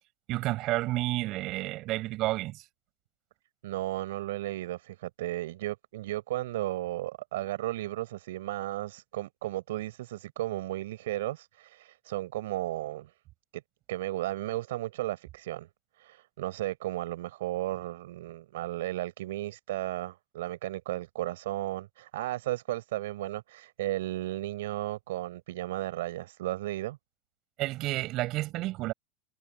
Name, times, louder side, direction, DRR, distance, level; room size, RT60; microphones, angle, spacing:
voice 1, 0.3-2.6 27.6-28.9, right 18 dB, 50° right, 7.5 m, -30 dB
voice 2, 3.6-13.1 13.9-15.7 16.0-27.0, right 15 dB, 85° right, 5.9 m, -34 dB
supercardioid pair, 125°, 0 cm